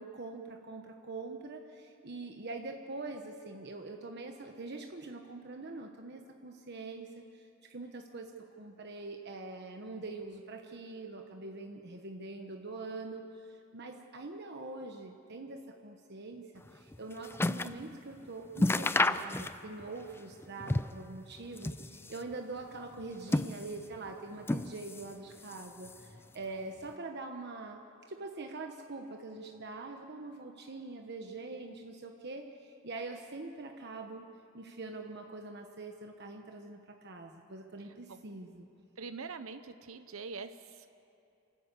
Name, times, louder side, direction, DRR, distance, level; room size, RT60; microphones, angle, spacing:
voice 1, 0.0-27.8 28.1-34.3 34.5-38.7, right 3 dB, 55° right, 3 dB, 1.1 m, -44 dB
sound 1, 16.7-17.8 18.2-18.3 18.5-19.9 20.1-21.1 21.4-22.3 22.9-24.0 24.4-25.1 25.4-26.2 26.9-27.0, left 2 dB, 10° left, 0.4 m, -32 dB
voice 2, 39.0-40.9, right 4 dB, 85° right, 10 dB, 0.7 m, -43 dB
28.0 x 13.5 x 8.3 m, 2.7 s
head